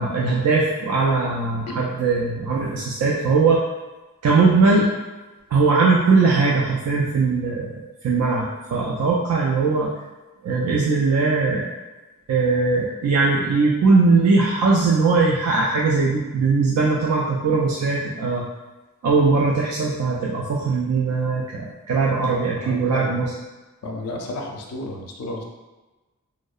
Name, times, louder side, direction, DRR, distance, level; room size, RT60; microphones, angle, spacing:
voice 1, 0.0-3.6 4.2-4.9 5.5-9.9 10.4-11.7 12.3-18.5 19.0-23.3, right 4 dB, 85° right, -4 dB, 0.3 m, -20 dB
voice 2, 22.6-23.2 23.8-25.4, left 1 dB, 90° left, 1 dB, 0.4 m, -32 dB
2.7 x 2.0 x 2.3 m, 1.2 s
head